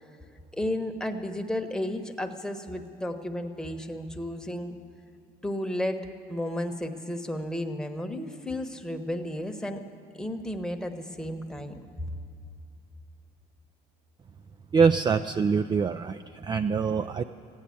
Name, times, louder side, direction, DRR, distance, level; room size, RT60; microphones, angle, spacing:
voice 1, 0.5-4.7 5.4-6.0 6.3-9.8 10.1-11.8 12.1-12.2, left 1 dB, 5° left, 4 dB, 1.0 m, -33 dB
voice 2, 14.7-17.2, right 5 dB, 25° right, 8 dB, 0.3 m, -24 dB
15.0 x 10.5 x 8.5 m, 2.6 s
cardioid pair, 110°, 17 cm